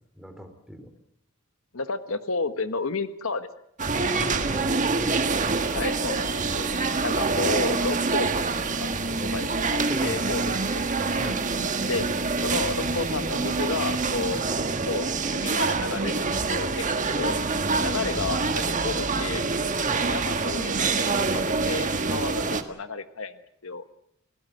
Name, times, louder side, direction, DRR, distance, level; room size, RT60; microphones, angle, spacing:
voice 1, 0.1-0.9 3.9-5.7 9.8-10.6 11.2-11.4 14.3-14.4 19.8-20.1 22.4-22.5, equal, ahead, 7 dB, 3.2 m, -38 dB
voice 2, 1.7-3.5 5.7-6.7 7.0-8.9 9.3-10.8 11.2-12.1 12.4-14.4 14.9-15.0 15.3-17.3 17.8-19.4 19.9-23.3 23.6-23.8, left 4 dB, 75° left, 10 dB, 1.4 m, -32 dB
sound 1, 3.8-22.6, right 4 dB, 35° right, 1.6 m, -26 dB
28.0 x 18.0 x 7.9 m, 0.73 s
head